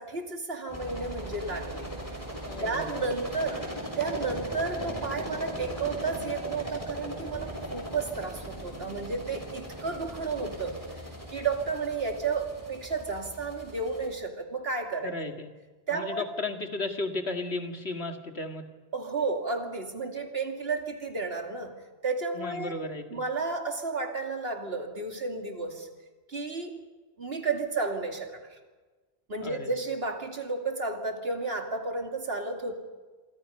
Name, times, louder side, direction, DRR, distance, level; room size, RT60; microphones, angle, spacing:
voice 1, 0.0-1.9 2.6-3.6 4.0-10.8 11.3-15.1 15.9-16.2 18.9-21.7 22.0-22.7 23.1-25.9 26.3-26.8 27.2-28.6 29.3-32.7, right 4 dB, 70° right, 4 dB, 2.9 m, -32 dB
sound 1, 0.7-14.1, equal, 15° right, 6.4 m, -39 dB
voice 2, 2.5-3.1 15.0-15.5 15.9-18.7 22.4-23.2 29.4-29.7, left 2 dB, 80° left, 5 dB, 2.3 m, -34 dB
27.0 x 25.0 x 5.5 m, 1.3 s
omnidirectional pair, 1.1 m